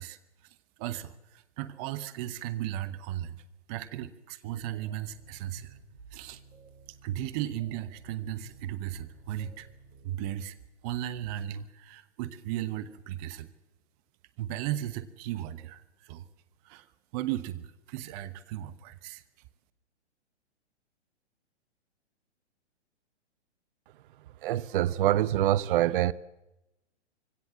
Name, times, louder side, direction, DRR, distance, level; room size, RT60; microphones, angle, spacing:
voice 1, 0.0-3.4 3.7-5.8 6.1-6.4 7.0-9.7 10.0-10.6 10.8-13.5 14.4-16.3 16.6-16.9 17.1-19.2, right 12 dB, 35° right, 1.0 m, -36 dB
sound 1, 4.5-10.3, right 4 dB, 65° right, 5.3 m, -54 dB
voice 2, 24.4-26.1, right 13 dB, 50° right, 0.6 m, -25 dB
24.0 x 17.0 x 7.3 m
hypercardioid pair, 120°, 34 cm